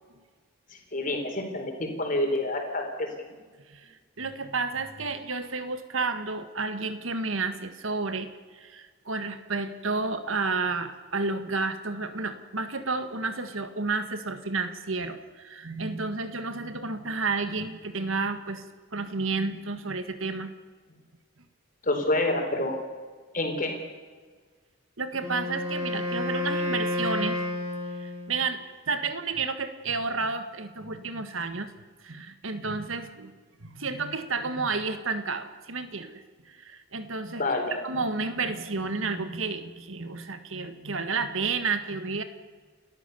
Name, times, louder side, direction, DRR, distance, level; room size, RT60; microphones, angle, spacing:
voice 1, 0.7-3.1 21.8-22.8 23.3-23.7 31.0-31.1 37.4-37.8 38.2-38.3, left 2 dB, 40° left, 3 dB, 4.5 m, -28 dB
voice 2, 4.2-18.6 18.9-20.5 25.0-27.4 28.0-28.6 28.9-31.7 32.0-33.3 33.6-42.2, right 4 dB, 70° right, 9 dB, 1.7 m, -31 dB
Wind instrument woodwind instrument, 25.1-28.4, left 1 dB, 30° right, 5.7 m, -30 dB
29.5 x 13.5 x 7.0 m, 1.5 s
head